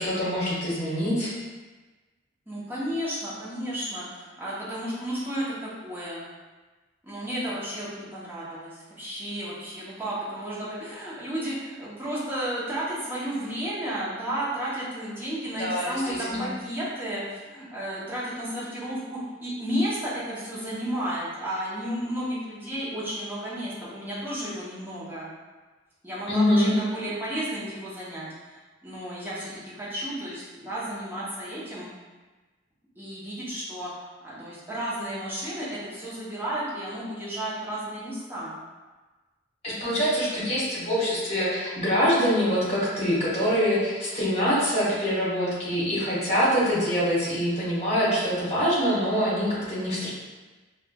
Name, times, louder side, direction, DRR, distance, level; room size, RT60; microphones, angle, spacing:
voice 1, 0.0-1.3 15.6-16.0 16.3-16.5 26.3-26.8 39.6-50.1, equal, 35° left, -8 dB, 1.1 m, -24 dB
voice 2, 2.5-6.2 7.0-25.3 26.0-31.9 33.0-38.5, equal, 10° right, -9 dB, 0.8 m, -33 dB
4.3 x 2.2 x 2.2 m, 1.3 s
head